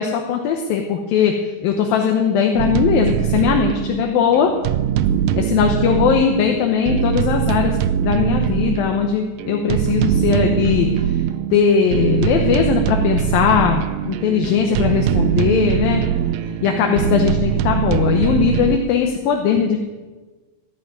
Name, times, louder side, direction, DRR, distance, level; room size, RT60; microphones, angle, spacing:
voice 1, 0.0-4.5 5.4-7.7 8.0-11.2 11.5-16.0 16.4-19.8, left 7 dB, 85° left, 2 dB, 2.9 m, -19 dB
sound 1, 2.6-18.8, right 10 dB, 85° right, 2.3 m, -21 dB
15.0 x 7.9 x 9.4 m, 1.3 s
omnidirectional pair, 4.0 m